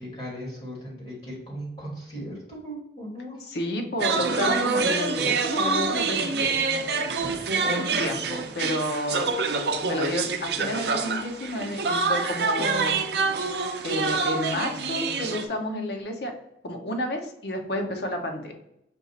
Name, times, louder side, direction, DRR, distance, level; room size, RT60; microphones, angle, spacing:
voice 1, 0.0-3.5 7.1-7.4, equal, 35° left, -4 dB, 1.7 m, -38 dB
voice 2, 3.5-6.6 7.6-9.3 9.8-13.0 13.8-16.3 16.6-18.5, left 1 dB, 70° left, 3 dB, 0.8 m, -30 dB
sound 1, 4.0-15.4, right 4 dB, 70° right, 0.5 m, -26 dB
5.3 x 2.4 x 4.1 m, 0.80 s
head